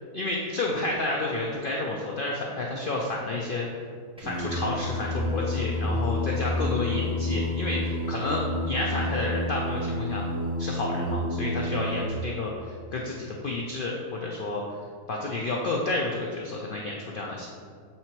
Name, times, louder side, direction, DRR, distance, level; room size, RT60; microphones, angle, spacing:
voice 1, 0.1-3.7 4.2-10.2 10.6-14.6 15.1-17.5, left 2 dB, 75° left, -2 dB, 0.4 m, -30 dB
Singing, 4.2-12.1, left 1 dB, 5° right, 0.5 m, -29 dB
7.5 x 2.9 x 4.5 m, 2.1 s
omnidirectional pair, 1.6 m